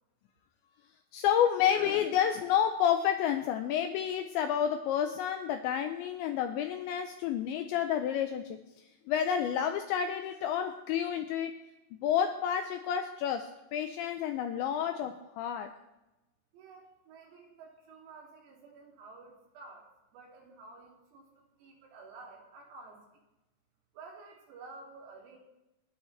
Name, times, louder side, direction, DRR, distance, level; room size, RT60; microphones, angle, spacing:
voice 1, 1.1-8.6 9.1-11.6 12.0-15.7, left 9 dB, 90° left, 6 dB, 2.6 m, -30 dB
voice 2, 16.5-21.2 21.6-23.1 23.9-25.4, right 3 dB, 90° right, -2 dB, 5.6 m, -51 dB
30.0 x 10.0 x 3.4 m, 0.98 s
omnidirectional pair, 6.0 m